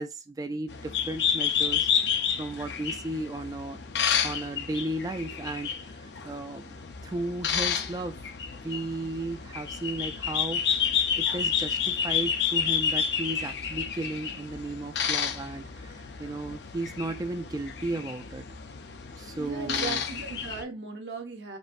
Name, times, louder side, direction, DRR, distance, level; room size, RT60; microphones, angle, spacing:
voice 1, 0.0-3.8 4.2-6.8 7.0-8.3 8.6-18.5 19.2-20.0, right 2 dB, 20° right, 0.3 m, -35 dB
sound 1, 0.7-20.6, left 7 dB, 75° left, 0.5 m, -30 dB
voice 2, 19.4-21.6, right 4 dB, 90° right, 1.0 m, -37 dB
5.2 x 2.6 x 2.5 m
head